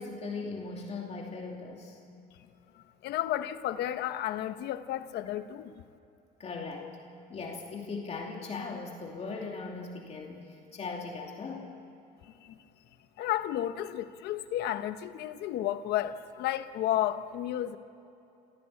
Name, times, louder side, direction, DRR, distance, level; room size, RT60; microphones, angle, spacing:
voice 1, 0.0-2.0 6.4-6.9 7.3-11.7, left 4 dB, 40° left, 0 dB, 2.7 m, -39 dB
voice 2, 3.0-5.8 12.4-12.6 13.2-17.8, left 12 dB, 80° left, 11 dB, 1.1 m, -32 dB
26.0 x 16.0 x 8.5 m, 2.9 s
cardioid pair, 110°, 17 cm